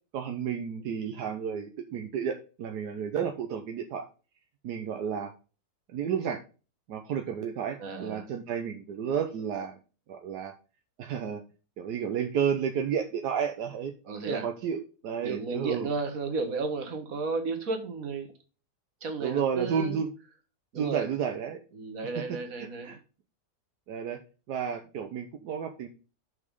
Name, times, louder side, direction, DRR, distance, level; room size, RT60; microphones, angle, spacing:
voice 1, 0.1-4.0 4.6-5.3 5.9-6.4 6.9-9.8 10.1-10.5 11.0-11.4 11.8-13.9 14.3-15.9 19.2-20.1 20.7-21.6 22.1-23.0 23.9-24.2 24.5-25.9, right 7 dB, 80° right, 5 dB, 1.4 m, -31 dB
voice 2, 7.8-8.3 14.1-14.5 15.2-18.3 19.0-20.0 20.7-21.1 21.8-23.0, right 4 dB, 60° right, 6 dB, 1.9 m, -33 dB
6.3 x 5.8 x 5.2 m, 0.34 s
omnidirectional pair, 1.7 m